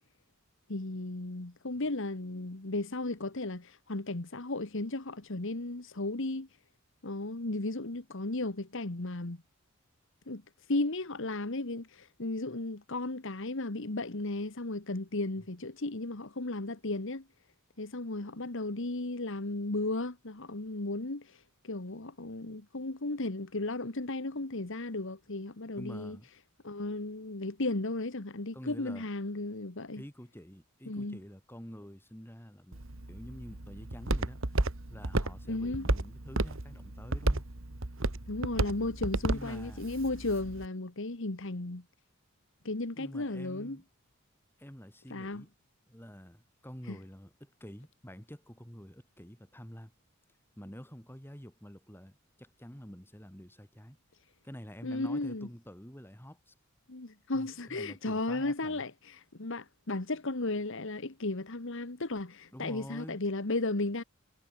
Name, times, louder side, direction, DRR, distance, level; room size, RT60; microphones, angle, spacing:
voice 1, 0.7-6.5 7.0-9.4 10.3-10.4 10.7-17.2 17.8-26.2 26.6-30.0 30.9-31.2 35.5-35.9 38.3-41.8 42.7-43.8 45.1-45.4 46.9-47.0 54.8-55.5 56.9-64.0, left 2 dB, 65° left, 1.6 m, -35 dB
voice 2, 25.8-26.3 28.5-29.1 29.9-32.8 33.1-34.4 34.9-37.5 39.3-39.9 42.9-43.8 44.6-45.5 45.9-49.9 50.6-54.0 54.4-56.5 57.3-58.9 62.5-63.2, equal, 10° left, 7.8 m, -48 dB
Walk footsteps, 32.7-40.7, right 2 dB, 65° right, 1.9 m, -33 dB
head